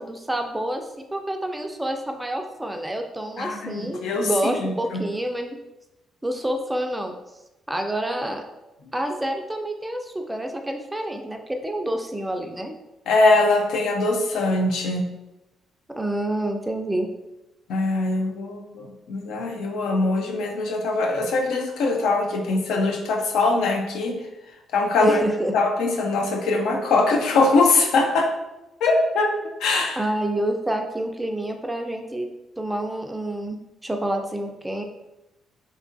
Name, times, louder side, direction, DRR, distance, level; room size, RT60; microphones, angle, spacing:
voice 1, 0.0-5.6 6.2-7.2 7.7-8.4 8.9-12.7 15.9-17.1 25.0-25.5 30.0-32.3 32.6-34.8, right 1 dB, 10° right, 4 dB, 0.3 m, -28 dB
voice 2, 3.4-4.3 4.5-5.0 13.1-15.0 17.7-24.2 24.7-25.2 25.5-28.3 28.8-29.3 29.6-30.0, left 3 dB, 80° left, 3 dB, 0.4 m, -22 dB
2.8 x 2.3 x 2.5 m, 0.96 s
cardioid pair, 90°, 0 cm